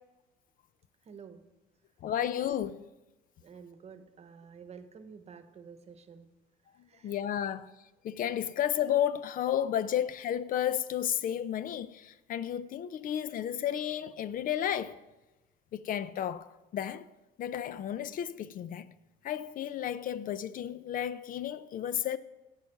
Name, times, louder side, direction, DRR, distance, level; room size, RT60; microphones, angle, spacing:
voice 1, 1.0-1.4 3.4-6.3 6.9-7.2 11.0-11.1, right 6 dB, 40° right, 1.0 m, -50 dB
voice 2, 2.0-2.9 7.0-7.7 8.0-15.0 15.7-17.1 17.4-18.9 19.2-22.2, left 10 dB, 55° left, 0.5 m, -32 dB
9.1 x 8.5 x 6.5 m
cardioid pair, 110°, 17 cm